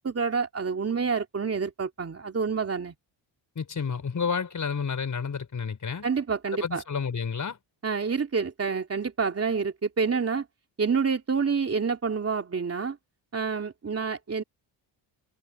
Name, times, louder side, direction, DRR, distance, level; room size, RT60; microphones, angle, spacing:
voice 1, 0.0-2.9 6.0-6.8 7.8-10.4 10.8-13.0 13.3-14.4, right 5 dB, 30° right, 2.9 m, -28 dB
voice 2, 3.6-6.1 6.6-7.6, left 6 dB, 40° left, 5.6 m, -30 dB
cardioid pair, 105°, 48 cm